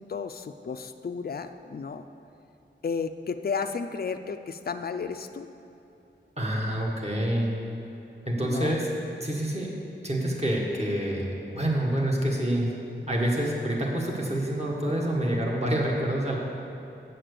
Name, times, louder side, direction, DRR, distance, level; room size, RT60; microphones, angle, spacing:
voice 1, 0.0-2.0 2.8-5.5 8.4-8.8, left 5 dB, 50° left, 8 dB, 0.4 m, -33 dB
voice 2, 6.4-7.6 8.2-8.9 9.2-9.7 10.0-12.7 13.1-16.4, right 1 dB, 35° right, -3 dB, 1.7 m, -27 dB
7.9 x 7.5 x 6.8 m, 2.8 s
wide cardioid pair, 75°, 20 cm